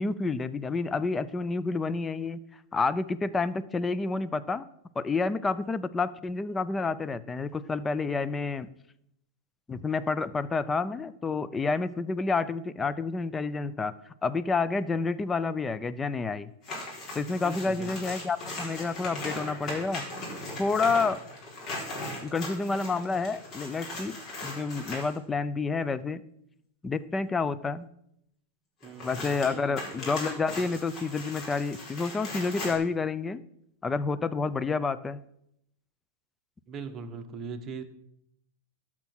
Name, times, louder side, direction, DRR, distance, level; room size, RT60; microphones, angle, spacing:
voice 1, 0.0-2.4 2.7-4.6 5.0-8.7 9.7-16.5 17.1-20.0 20.6-21.2 22.2-26.2 26.8-27.9 29.0-33.4 33.8-35.2, left 4 dB, 15° left, 15 dB, 0.6 m, -29 dB
sound 1, 16.6-25.2 28.8-32.8, left 2 dB, 35° left, 4.5 m, -38 dB
voice 2, 17.4-17.9 28.8-29.7 30.5-30.6 36.7-37.8, right 5 dB, 30° right, 6 dB, 1.3 m, -40 dB
12.5 x 6.0 x 6.2 m, 0.76 s
hypercardioid pair, 115°, 0 cm